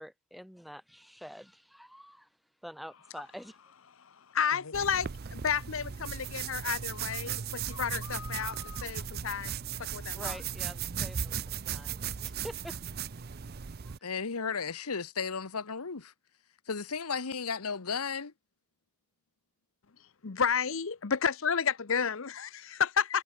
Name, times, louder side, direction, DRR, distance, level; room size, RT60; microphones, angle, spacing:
voice 1, 0.0-2.3 2.6-3.6 10.1-12.8 13.8-13.9, equal, ahead, 2.7 m, -46 dB
voice 2, 4.0-9.5 9.8-10.4 20.0-23.2, left 7 dB, 60° left, 0.8 m, -31 dB
sound 1, 4.7-14.0, right 8 dB, 45° right, 0.5 m, -37 dB
voice 3, 14.0-16.1 16.7-18.3, left 5 dB, 90° left, 1.2 m, -34 dB
head